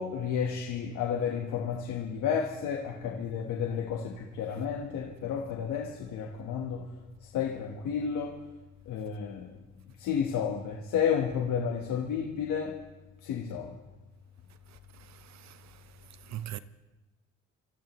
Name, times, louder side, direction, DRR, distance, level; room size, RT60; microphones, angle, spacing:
voice 1, 0.0-6.9 7.2-8.4 8.9-9.5 10.0-12.8 13.2-13.8, left 7 dB, 90° left, 1.3 m, -31 dB
voice 2, 15.1-15.6 16.3-16.6, right 12 dB, 65° right, 0.8 m, -40 dB
26.0 x 14.0 x 3.1 m
cardioid pair, 90°, 30 cm